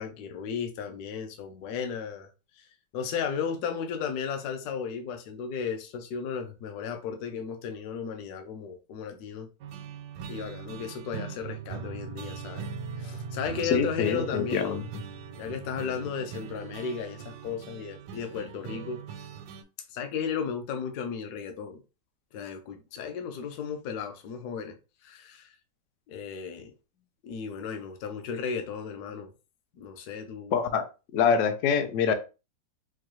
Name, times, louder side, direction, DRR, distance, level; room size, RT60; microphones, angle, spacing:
voice 1, 0.0-2.3 2.6-2.7 2.9-9.5 10.3-12.7 13.0-14.8 15.4-19.0 19.9-21.8 22.3-24.8 25.0-25.6 26.1-26.7 27.2-29.3 29.7-30.5, left 6 dB, 65° left, 1.1 m, -35 dB
sound 1, 9.6-19.6, right 6 dB, 85° right, 1.3 m, -40 dB
voice 2, 13.7-14.8 30.5-30.8 31.1-32.1, left 6 dB, 85° left, 0.6 m, -25 dB
4.6 x 2.3 x 3.0 m
omnidirectional pair, 2.0 m